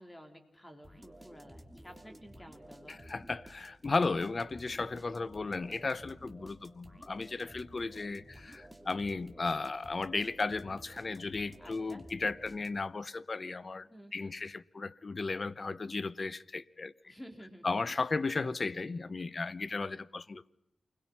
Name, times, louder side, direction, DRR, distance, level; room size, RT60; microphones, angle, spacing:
voice 1, 0.0-3.0 11.6-12.0 13.9-14.3 17.1-17.7, equal, 15° left, 4.2 m, -52 dB
sound 1, 0.8-13.0, right 1 dB, ahead, 3.3 m, -53 dB
voice 2, 2.9-17.1 17.6-20.4, left 3 dB, 45° left, 0.9 m, -35 dB
28.5 x 21.5 x 5.7 m
cardioid pair, 65°, 0 cm